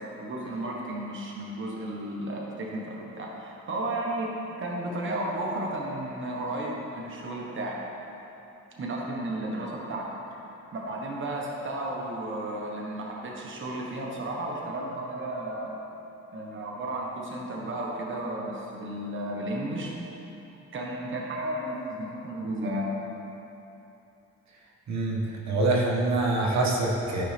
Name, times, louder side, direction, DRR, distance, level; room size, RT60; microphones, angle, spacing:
voice 1, 0.0-7.8 8.8-10.1 10.7-15.8 16.3-19.9 20.7-22.9, right 1 dB, 40° right, -2 dB, 1.3 m, -33 dB
voice 2, 24.9-27.2, right 2 dB, 65° right, -2 dB, 1.3 m, -25 dB
12.5 x 5.3 x 3.5 m, 3.0 s
cardioid pair, 90°, 30 cm